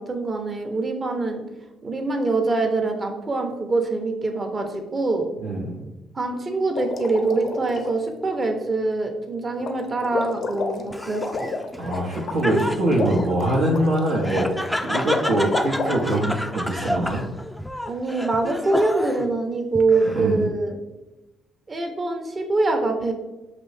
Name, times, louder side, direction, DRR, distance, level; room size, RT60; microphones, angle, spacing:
voice 1, 0.0-1.4 1.8-5.3 6.1-11.5 17.9-20.8 21.7-23.1, right 3 dB, 35° right, 4 dB, 0.8 m, -24 dB
voice 2, 5.4-5.7 11.8-14.5 14.8-17.2 20.0-20.5, right 1 dB, 75° right, -6 dB, 0.8 m, -23 dB
sound 1, 6.8-7.9 9.6-9.8 10.0-16.2, left 3 dB, 55° left, 0.6 m, -30 dB
Laughter, 10.9-19.3 19.7-20.4, equal, 5° left, 0.4 m, -31 dB
5.9 x 2.7 x 3.3 m, 1.0 s
hypercardioid pair, 50°, 0 cm